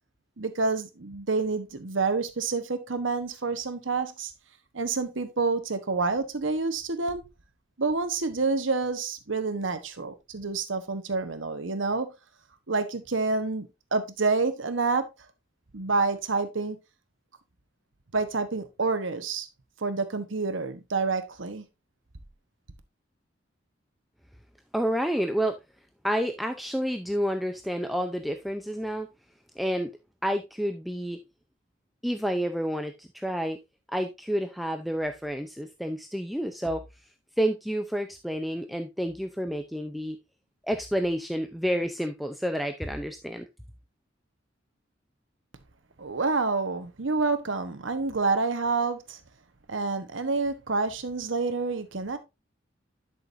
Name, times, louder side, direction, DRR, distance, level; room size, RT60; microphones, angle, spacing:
voice 1, 0.4-4.3 4.7-7.3 7.8-12.1 12.7-15.1 15.7-16.8 18.1-19.5 19.8-21.6 46.0-49.2 49.7-52.2, right 3 dB, 85° right, 1.2 m, -28 dB
voice 2, 24.7-25.6 26.0-29.1 29.6-29.9 30.2-31.2 32.0-33.6 33.9-36.8 37.4-40.2 40.7-43.5, equal, ahead, 0.6 m, -29 dB
11.0 x 6.2 x 2.6 m
head